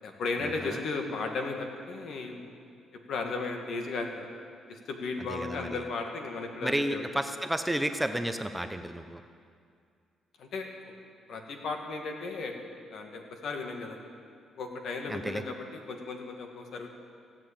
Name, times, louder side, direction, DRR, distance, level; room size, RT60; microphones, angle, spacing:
voice 1, 0.0-2.5 3.1-4.3 4.7-7.0 10.4-10.9 11.3-12.5 12.9-14.0 14.6-16.9, left 3 dB, 70° left, 3 dB, 2.0 m, -35 dB
voice 2, 5.3-5.8 6.6-9.2 15.1-15.4, right 1 dB, 5° right, 8 dB, 0.7 m, -31 dB
16.0 x 7.6 x 8.8 m, 2.3 s
cardioid pair, 90°, 0 cm